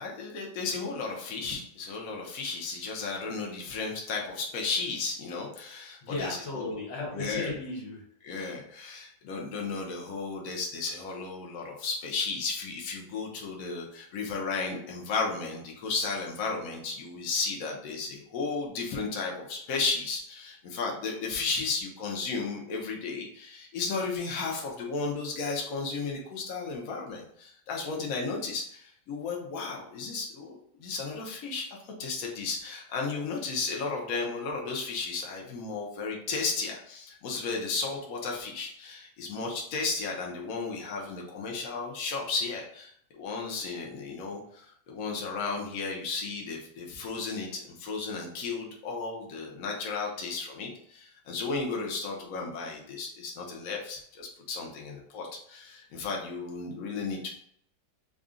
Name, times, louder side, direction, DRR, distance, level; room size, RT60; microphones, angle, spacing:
voice 1, 0.0-6.6 7.1-7.5 8.2-31.7 32.0-57.3, left 4 dB, 60° left, -1 dB, 1.1 m, -34 dB
voice 2, 6.0-8.0, left 2 dB, 90° left, -2 dB, 1.7 m, -35 dB
3.8 x 2.3 x 3.6 m, 0.66 s
omnidirectional pair, 1.9 m